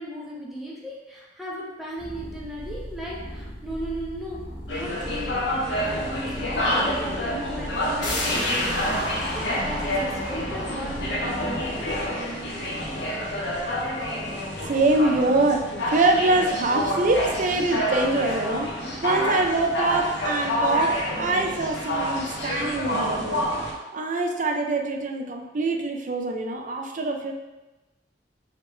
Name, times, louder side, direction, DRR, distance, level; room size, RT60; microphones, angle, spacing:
voice 1, 0.0-4.4 4.7-5.4 5.8-11.9, right 1 dB, ahead, -6 dB, 0.9 m, -36 dB
sound 1, 2.0-14.6, equal, 30° left, 1.3 m, -39 dB
sound 2, 4.7-23.7, equal, 90° left, 0.8 m, -28 dB
sound 3, 8.0-13.5 13.8-13.9, left 1 dB, 70° left, 1.2 m, -33 dB
voice 2, 14.7-23.4 23.9-27.3, right 2 dB, 45° right, 2 dB, 0.5 m, -24 dB
4.9 x 3.1 x 3.2 m, 1.1 s
head